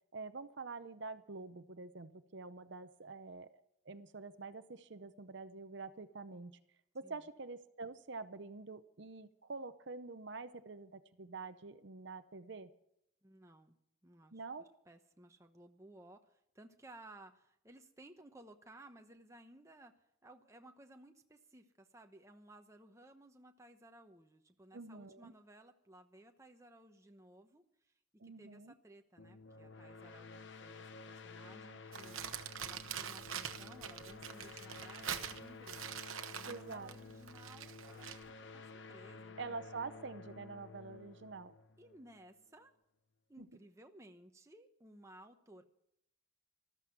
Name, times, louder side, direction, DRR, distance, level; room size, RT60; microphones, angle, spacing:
voice 1, 0.1-3.5 3.8-6.6 6.9-12.7 14.3-14.7 24.7-25.3 28.2-28.7 36.4-36.9 39.4-41.5 43.4-43.5, right 3 dB, 55° right, 11 dB, 0.7 m, -47 dB
voice 2, 13.2-13.8 14.0-14.4 14.8-27.9 28.2-32.2 32.6-38.1 38.5-39.6 41.8-42.7 43.3-45.6, right 1 dB, 15° right, 5 dB, 1.0 m, -58 dB
sound 1, 29.2-42.5, left 3 dB, 55° left, 0.8 m, -53 dB
Crumpling crinkling, 31.9-38.3, right 8 dB, 75° right, 1.0 m, -44 dB
14.0 x 13.0 x 5.9 m, 0.76 s
head